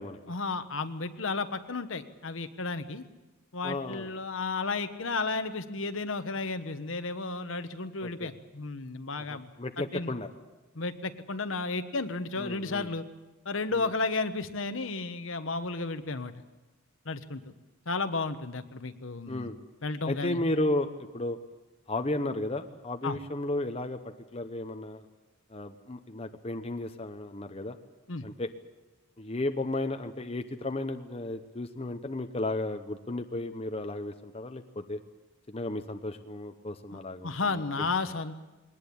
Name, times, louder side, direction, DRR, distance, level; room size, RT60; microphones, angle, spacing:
voice 1, 0.3-3.0 3.5-9.5 9.9-10.1 10.7-13.0 13.4-16.3 17.0-17.4 17.9-19.5 19.8-20.4 23.0-23.2 28.1-28.2 36.9-38.4, left 3 dB, 65° left, 9 dB, 1.2 m, -33 dB
voice 2, 3.6-4.1 8.0-8.3 9.1-10.3 12.4-12.9 13.7-13.8 19.3-19.6 20.0-21.4 21.9-25.0 25.5-27.8 28.2-28.5 29.2-35.0 35.5-37.3 37.8-37.9, left 2 dB, 30° left, 6 dB, 0.9 m, -34 dB
21.5 x 19.0 x 8.6 m, 1.1 s
head